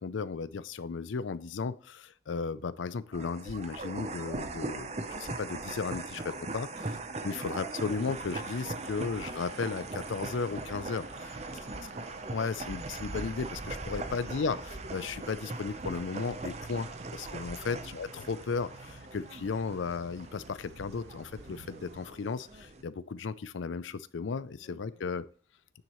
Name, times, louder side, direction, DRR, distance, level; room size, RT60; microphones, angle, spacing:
voice 1, 0.0-6.7 7.2-11.0 12.3-25.2, left 5 dB, 85° left, 15 dB, 0.5 m, -35 dB
sound 1, 3.1-22.8, right 2 dB, 35° right, 0.7 m, -40 dB
voice 2, 6.6-7.0 7.3-7.4 11.1-12.0 17.6-17.8 24.6-25.0, equal, 60° right, 0 dB, 2.7 m, -53 dB
sound 2, 7.8-22.1, right 2 dB, 85° right, 1.0 m, -51 dB
9.4 x 7.3 x 3.1 m, 0.43 s
head